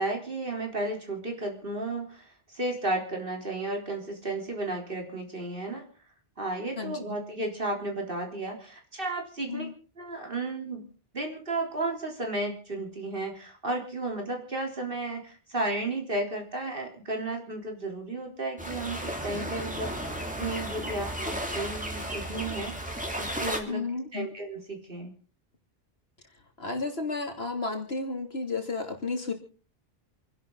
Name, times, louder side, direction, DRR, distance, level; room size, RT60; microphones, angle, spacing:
voice 1, 0.0-5.8 6.4-9.7 10.0-10.9 11.1-23.9 24.1-25.1, right 2 dB, 60° right, 2 dB, 4.0 m, -33 dB
voice 2, 6.8-7.2 9.5-9.7 23.7-24.3 26.6-29.3, left 3 dB, 75° left, 4 dB, 3.1 m, -32 dB
sound 1, 18.6-23.6, right 1 dB, 5° right, 2.9 m, -34 dB
28.5 x 11.0 x 3.9 m, 0.39 s
omnidirectional pair, 1.1 m